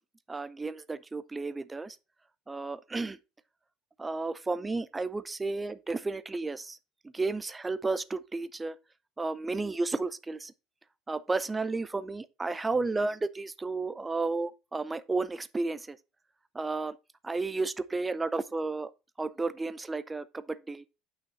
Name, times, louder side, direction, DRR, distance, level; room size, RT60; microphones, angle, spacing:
voice 1, 0.3-2.0 2.5-3.2 4.0-6.8 7.1-8.7 9.2-10.5 11.1-16.0 16.5-17.0 17.2-18.9 19.2-20.8, right 3 dB, 10° right, 0.5 m, -32 dB
8.8 x 5.8 x 4.0 m
cardioid pair, 180°, 0 cm